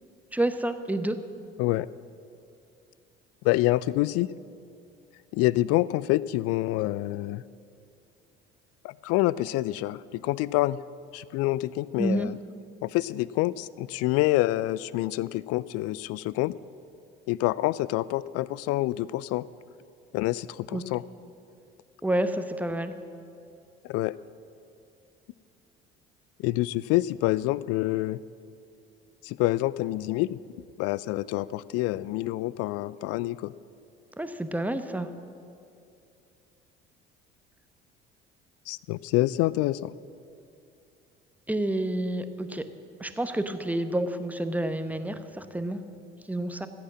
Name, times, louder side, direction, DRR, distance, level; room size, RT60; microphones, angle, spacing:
voice 1, 0.3-1.2 12.0-12.3 20.7-20.8 22.0-22.9 34.2-35.1 41.5-42.6 43.0-45.8 46.3-46.7, right 1 dB, 5° right, 9 dB, 0.9 m, -29 dB
voice 2, 3.4-4.3 5.3-7.4 8.8-10.8 11.1-12.4 12.8-16.5 17.3-19.5 20.1-21.0 23.8-24.1 26.4-28.2 29.2-30.4 30.8-33.5 38.7-39.9, left 17 dB, 55° left, 20 dB, 0.4 m, -27 dB
14.0 x 8.8 x 7.4 m, 2.6 s
figure-of-eight pair, 55°, 30 cm